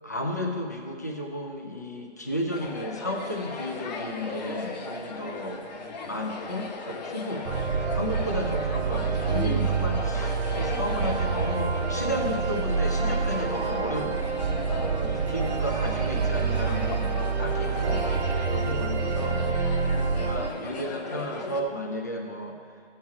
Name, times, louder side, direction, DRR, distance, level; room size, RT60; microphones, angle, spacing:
voice 1, 0.0-5.6 6.0-7.5 7.9-14.2 14.8-18.0 18.5-19.4 20.2-22.6, left 1 dB, 15° left, 2 dB, 0.3 m, -33 dB
sound 1, 2.5-21.6, left 3 dB, 40° left, 1.0 m, -36 dB
sound 2, 7.4-20.5, right 5 dB, 80° right, 1.4 m, -27 dB
14.0 x 7.3 x 4.7 m, 2.2 s
hypercardioid pair, 155°, 34 cm